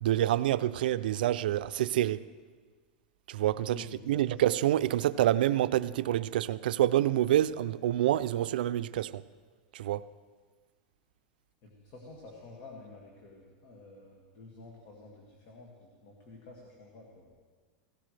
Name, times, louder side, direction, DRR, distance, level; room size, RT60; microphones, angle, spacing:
voice 1, 0.0-2.3 3.3-9.2 9.7-10.0, right 12 dB, 85° right, 0.4 m, -27 dB
voice 2, 3.7-4.2 11.6-17.3, left 3 dB, 45° left, 2.1 m, -50 dB
17.0 x 16.5 x 3.3 m
supercardioid pair, 160°, 5 cm